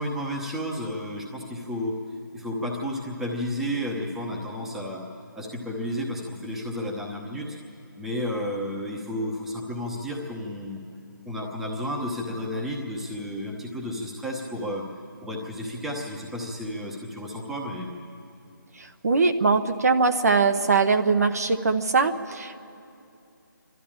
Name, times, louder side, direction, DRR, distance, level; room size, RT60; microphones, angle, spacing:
voice 1, 0.0-1.9 2.3-5.0 5.3-7.6 8.0-10.8 11.2-14.8 15.2-17.9, equal, 5° right, -1 dB, 1.0 m, -32 dB
voice 2, 18.8-22.6, right 4 dB, 50° right, 7 dB, 1.0 m, -22 dB
27.0 x 12.5 x 8.7 m, 2.6 s
figure-of-eight pair, 170°, 11 cm